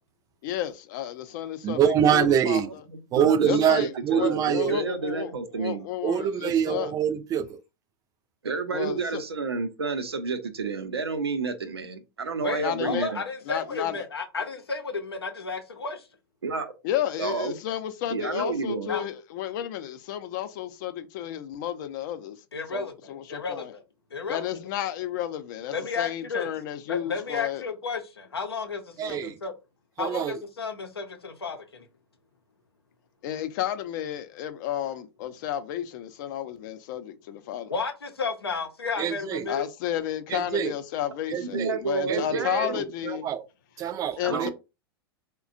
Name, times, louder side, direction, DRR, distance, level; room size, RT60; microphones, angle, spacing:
voice 1, 0.4-1.8 2.1-2.6 3.5-6.9 8.7-9.0 12.6-13.1 13.5-14.0 16.8-22.4 22.7-23.7 24.3-27.6 33.2-37.7 39.5-43.3 44.2-44.5, left 11 dB, 50° left, 0.5 m, -32 dB
voice 2, 1.6-2.7 3.1-4.8 6.0-7.6 29.0-29.4 30.0-30.4 39.0-39.5 40.3-40.7 41.3-41.8 42.1-43.5 43.8-44.5, right 9 dB, 25° right, 0.4 m, -25 dB
voice 3, 2.9-5.9 8.4-13.2 16.4-16.7 17.2-17.5 18.1-18.9 41.4-42.8 44.2-44.5, right 4 dB, 85° right, 0.6 m, -30 dB
voice 4, 12.4-16.1 18.9-19.0 22.5-23.8 24.1-24.5 25.7-26.5 26.9-29.5 30.0-31.9 37.7-39.6, left 4 dB, 85° left, 0.6 m, -32 dB
4.0 x 2.2 x 2.5 m
hypercardioid pair, 95°, 13 cm